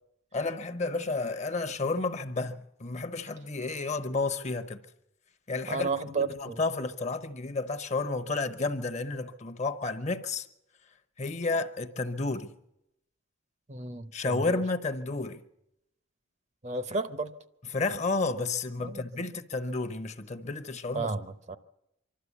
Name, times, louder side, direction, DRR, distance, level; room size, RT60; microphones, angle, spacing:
voice 1, 0.3-4.8 5.5-5.9 6.1-10.5 11.2-12.5 14.1-15.4 17.7-21.1, left 3 dB, 35° left, 0.9 m, -31 dB
voice 2, 5.7-6.6 13.7-14.6 16.6-17.3 18.8-19.3 20.9-21.6, right 3 dB, 35° right, 0.7 m, -33 dB
25.0 x 12.5 x 8.3 m
head